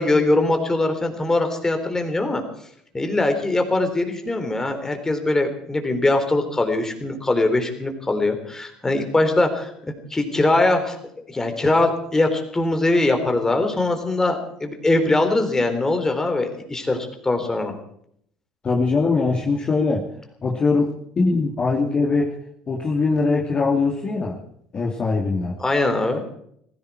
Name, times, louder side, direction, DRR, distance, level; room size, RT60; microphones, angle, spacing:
voice 1, 0.0-2.4 2.9-9.7 10.1-11.0 11.3-17.7 25.6-26.2, left 2 dB, 15° left, 6 dB, 3.8 m, -21 dB
voice 2, 18.6-20.1 20.4-22.3 22.7-24.4 24.7-25.6, left 3 dB, 35° left, -1 dB, 2.7 m, -21 dB
19.5 x 15.5 x 4.7 m, 0.69 s
hypercardioid pair, 65°, 3 cm